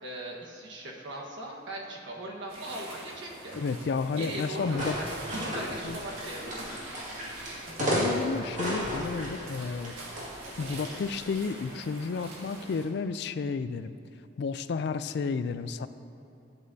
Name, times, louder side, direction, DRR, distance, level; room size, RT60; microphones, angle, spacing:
voice 1, 0.0-3.6 4.2-6.7, right 1 dB, 65° right, -2 dB, 1.4 m, -39 dB
sound 1, 2.5-12.9, right 1 dB, 85° right, 1.7 m, -44 dB
voice 2, 3.5-5.0 5.8-6.0 7.8-9.9 10.6-14.0 14.4-15.9, left 5 dB, 55° left, 13 dB, 0.3 m, -31 dB
sound 2, 4.6-11.6, equal, 40° right, 2.0 m, -34 dB
12.5 x 8.7 x 2.7 m, 2.9 s
head